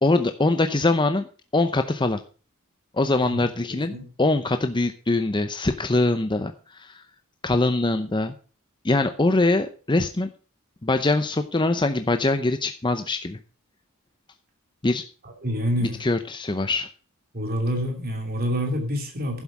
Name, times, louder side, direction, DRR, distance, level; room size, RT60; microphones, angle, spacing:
voice 1, 0.0-1.3 1.5-2.2 2.9-6.5 6.8-7.0 7.4-8.3 8.8-10.3 10.8-13.4 14.8-15.0 15.8-16.9, left 2 dB, 20° left, 0.7 m, -23 dB
voice 2, 3.7-4.1 15.2-16.0 17.3-19.4, equal, 45° right, 2.7 m, -27 dB
11.0 x 7.9 x 6.0 m
head